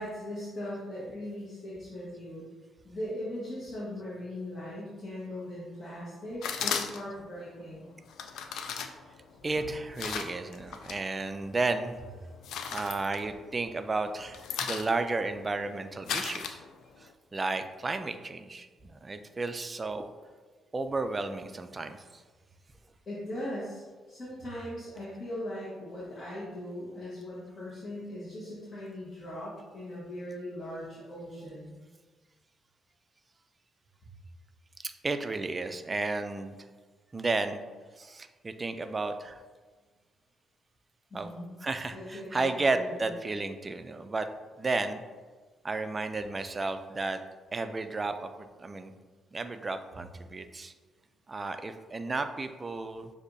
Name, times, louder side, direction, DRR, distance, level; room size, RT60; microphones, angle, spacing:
voice 1, 0.0-2.4 2.8-7.9 23.1-31.7 41.1-41.5 41.9-43.1, left 1 dB, 40° left, -8 dB, 1.3 m, -39 dB
sound 1, 6.4-7.2 8.1-11.0 11.4-11.9 12.2-13.8 14.0-17.1, left 7 dB, 80° left, 0.3 m, -36 dB
voice 2, 9.4-12.0 12.7-16.6 17.0-20.1 20.7-22.2 34.8-36.6 37.1-37.6 38.0-39.4 41.1-41.3 41.6-44.3 44.6-45.0 45.6-47.2 47.5-48.3 48.6-48.9 49.3-50.7 51.3-53.1, right 3 dB, 25° right, 8 dB, 0.3 m, -33 dB
6.5 x 2.7 x 2.6 m, 1.4 s
cardioid pair, 90°, 0 cm